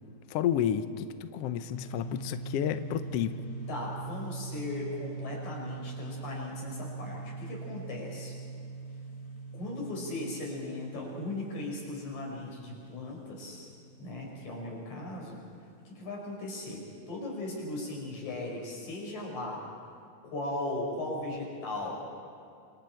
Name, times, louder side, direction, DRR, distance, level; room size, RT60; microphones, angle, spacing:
voice 1, 0.3-3.3, left 10 dB, 90° left, 10 dB, 1.3 m, -31 dB
sound 1, 1.7-15.2, right 4 dB, 45° left, 2.3 m, -42 dB
voice 2, 3.7-8.3 9.5-13.7 14.0-15.4 15.9-19.6 20.2-21.9, left 2 dB, 60° left, -2 dB, 6.5 m, -37 dB
27.5 x 27.0 x 4.5 m, 2.4 s
omnidirectional pair, 3.8 m